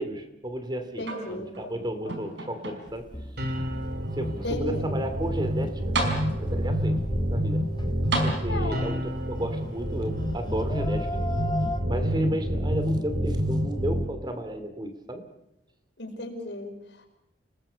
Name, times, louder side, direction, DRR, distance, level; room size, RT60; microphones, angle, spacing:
voice 1, 0.0-3.1 4.1-5.8 6.4-7.0 7.3-7.7 8.2-11.2 11.9-15.3, right 1 dB, 25° right, 8 dB, 2.5 m, -33 dB
voice 2, 1.0-1.7 2.1-2.2 4.4-4.9 8.5-9.0 16.0-16.7, left 1 dB, 70° left, 3 dB, 5.2 m, -34 dB
sound 1, 1.0-1.7 2.1-3.1 3.8-3.9 5.5-5.6 5.9-6.7 8.1-9.0 10.0-10.1, right 2 dB, 75° right, 4.9 m, -32 dB
sound 2, 2.9-11.8, left 1 dB, 25° left, 1.5 m, -37 dB
sound 3, 3.4-14.0, equal, 60° right, 3.2 m, -28 dB
29.5 x 19.5 x 6.9 m, 0.84 s
head